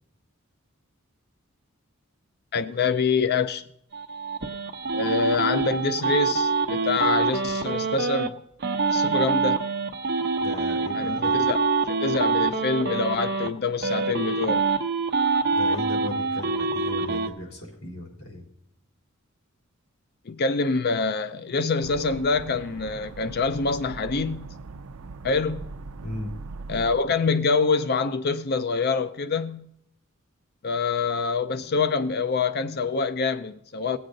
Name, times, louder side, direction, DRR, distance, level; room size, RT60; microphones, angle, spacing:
voice 1, 2.5-3.6 4.9-8.4 8.9-9.6 10.9-11.6 11.9-14.6 20.3-24.5 25.2-25.6 26.7-29.7 30.6-34.0, left 4 dB, 50° left, 0.5 m, -25 dB
sound 1, 3.9-8.3 8.6-13.5 13.8-17.3, right 4 dB, 50° right, 0.9 m, -25 dB
voice 2, 10.4-11.4 15.6-18.4 26.0-26.3, left 1 dB, 75° left, 3.5 m, -36 dB
sound 2, 21.8-27.0, right 4 dB, 85° right, 0.5 m, -40 dB
18.5 x 7.9 x 3.8 m
head